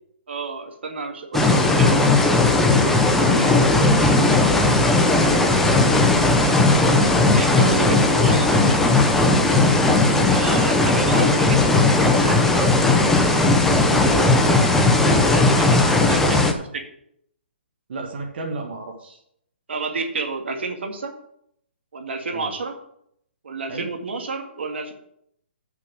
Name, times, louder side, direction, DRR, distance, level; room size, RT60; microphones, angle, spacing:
voice 1, 0.3-2.0 7.3-8.7 10.3-12.6 15.0-16.8 19.7-21.1 21.9-22.7 23.4-24.9, right 3 dB, 80° right, 4 dB, 2.0 m, -31 dB
sound 1, 1.3-16.5, left 2 dB, 5° left, 0.8 m, -17 dB
voice 2, 2.8-3.6 4.8-5.5 7.4-8.2 8.6-10.3 11.3-11.4 13.8-14.3 17.9-19.2 22.3-22.5 23.7-23.9, right 3 dB, 60° right, 1 dB, 1.7 m, -32 dB
7.8 x 6.1 x 7.6 m, 0.71 s
hypercardioid pair, 150°, 6 cm